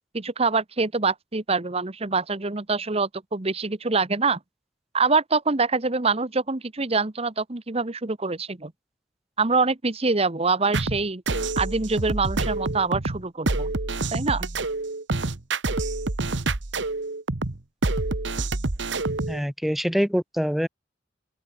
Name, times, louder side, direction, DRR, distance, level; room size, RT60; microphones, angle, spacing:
voice 1, 0.1-4.4 4.9-8.7 9.4-11.2 11.6-13.7 14.1-14.5, right 4 dB, 35° right, 1.1 m, -25 dB
sound 1, 10.7-19.4, right 2 dB, 70° right, 1.4 m, -27 dB
voice 2, 19.3-20.7, equal, ahead, 1.1 m, -24 dB
open air
head